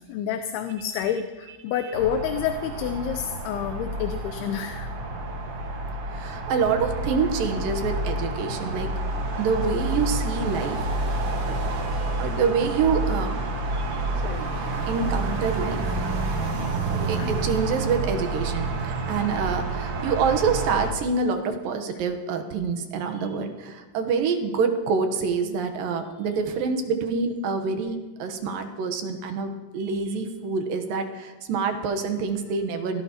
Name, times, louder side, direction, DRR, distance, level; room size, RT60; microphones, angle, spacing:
voice 1, 0.1-4.9 16.9-17.3, left 8 dB, 80° left, 7 dB, 2.6 m, -29 dB
sound 1, 1.9-20.9, right 2 dB, 50° right, 1.9 m, -29 dB
voice 2, 6.1-8.9 9.4-10.9 11.2-13.4 13.7-14.5 14.9-15.9 16.9-33.0, right 5 dB, 70° right, 6 dB, 2.6 m, -27 dB
24.0 x 17.5 x 3.0 m, 1.2 s
omnidirectional pair, 4.6 m